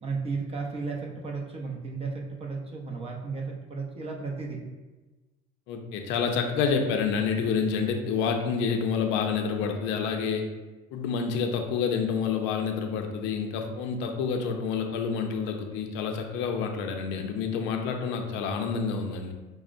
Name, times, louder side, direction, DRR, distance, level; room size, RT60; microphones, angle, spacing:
voice 1, 0.0-4.6 15.4-15.5, right 4 dB, 30° right, 0 dB, 0.6 m, -34 dB
voice 2, 5.7-10.4 10.9-19.3, left 6 dB, 70° left, 5 dB, 0.5 m, -28 dB
5.7 x 2.0 x 2.5 m, 1.2 s
supercardioid pair, 105°, 20 cm